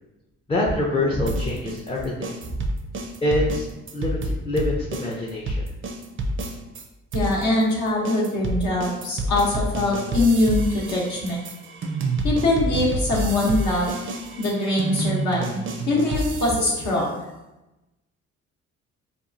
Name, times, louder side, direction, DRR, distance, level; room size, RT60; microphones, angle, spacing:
voice 1, 0.5-2.3 3.2-3.6 3.9-5.6, left 1 dB, 20° left, -4 dB, 0.4 m, -25 dB
sound 1, 1.3-6.8 7.1-16.9, right 2 dB, 45° right, 0.4 m, -28 dB
voice 2, 7.1-11.4 12.2-13.9 14.4-17.1, left 2 dB, 70° left, -4 dB, 0.7 m, -23 dB
2.9 x 2.3 x 2.5 m, 1.0 s
cardioid pair, 90°, 30 cm